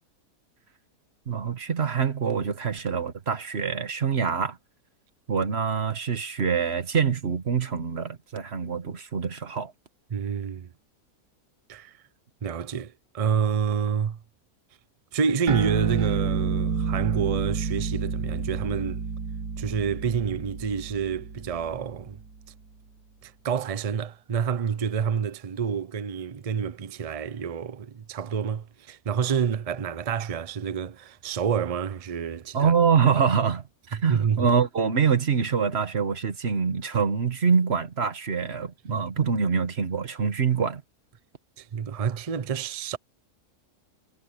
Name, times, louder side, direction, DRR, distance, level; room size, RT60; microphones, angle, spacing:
voice 1, 1.3-4.6 5.3-9.7 32.5-40.8, right 6 dB, 45° right, 1.5 m, -25 dB
voice 2, 10.1-10.7 11.7-12.0 12.4-14.2 15.1-19.0 19.6-22.2 23.2-32.7 33.9-34.5 38.9-39.1 41.6-43.0, right 7 dB, 70° right, 0.3 m, -28 dB
sound 1, 15.5-22.3, right 6 dB, 90° right, 2.0 m, -29 dB
omnidirectional pair, 1.7 m